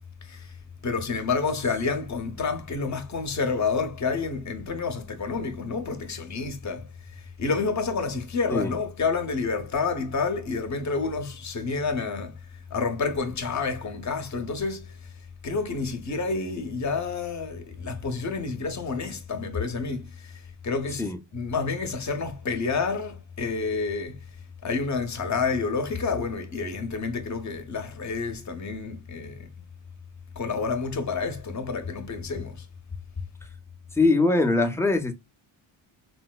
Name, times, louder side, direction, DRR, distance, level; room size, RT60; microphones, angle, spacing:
voice 1, 0.2-0.5 0.8-12.4 12.7-15.1 15.4-21.1 21.3-24.2 24.6-29.5 30.4-32.7, left 4 dB, 35° left, 0.8 m, -29 dB
voice 2, 33.9-35.1, left 3 dB, 5° left, 0.6 m, -22 dB
4.0 x 2.0 x 2.2 m
cardioid pair, 85°, 50 cm